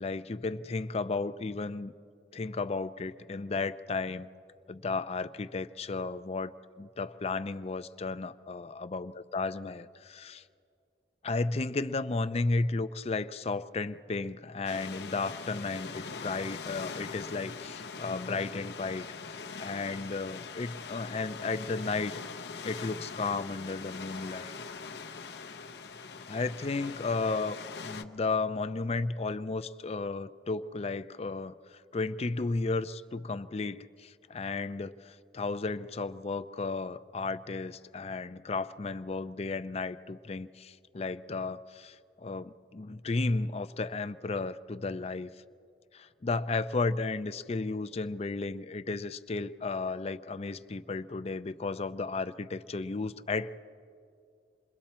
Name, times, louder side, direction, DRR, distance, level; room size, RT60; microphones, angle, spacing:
voice 1, 0.0-1.9 2.3-4.3 4.7-6.5 6.8-10.4 11.2-22.2 22.6-24.5 26.3-45.3 45.9-53.6, left 3 dB, 35° left, 13 dB, 0.5 m, -34 dB
sound 1, 14.6-28.0, left 5 dB, 70° left, 0.7 m, -42 dB
28.0 x 22.0 x 4.4 m, 2.4 s
head